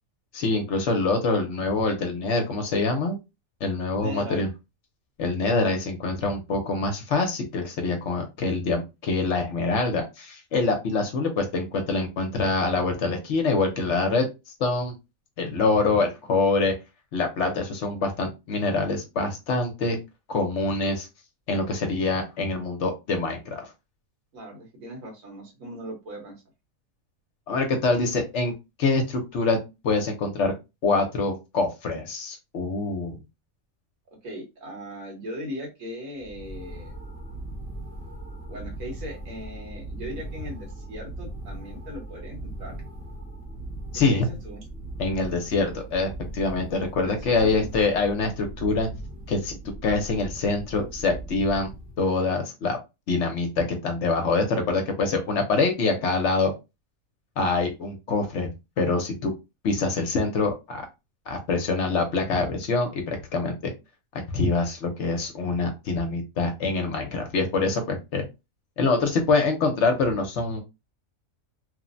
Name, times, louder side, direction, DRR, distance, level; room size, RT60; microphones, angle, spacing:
voice 1, 0.3-3.2 3.6-4.5 5.2-14.3 14.6-14.9 15.4-16.7 17.1-20.0 20.3-21.1 21.5-23.7 27.5-28.5 28.8-29.6 29.8-30.5 30.8-33.2 43.9-44.3 45.0-48.9 49.3-51.7 52.0-52.8 53.1-56.5 57.4-58.5 58.8-59.3 59.6-60.9 61.3-63.7 64.3-68.2 68.8-70.6, left 3 dB, 65° left, 5 dB, 0.9 m, -25 dB
voice 2, 4.0-4.4 24.3-26.3 34.2-36.9 38.5-42.8 44.1-44.7 47.0-47.7, equal, 75° right, 1 dB, 1.5 m, -38 dB
sound 1, 36.2-52.2, right 1 dB, 10° right, 0.6 m, -39 dB
3.1 x 2.1 x 2.5 m, 0.25 s
omnidirectional pair, 1.5 m